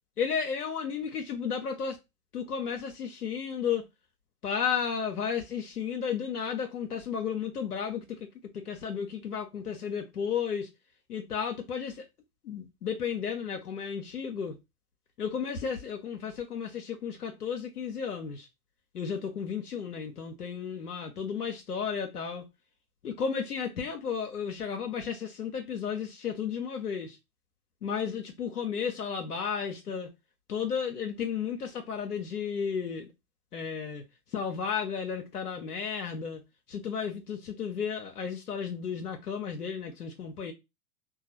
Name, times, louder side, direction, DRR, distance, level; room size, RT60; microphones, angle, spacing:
voice 1, 0.2-2.0 2.3-3.8 4.4-8.0 8.7-10.6 11.1-11.9 12.5-14.5 15.2-18.4 19.0-22.4 23.0-27.1 27.8-30.1 30.5-33.1 33.5-34.0 34.3-36.4 36.7-40.5, left 7 dB, 85° left, 0.6 m, -33 dB
3.0 x 2.2 x 2.8 m
figure-of-eight pair, 105°, 46 cm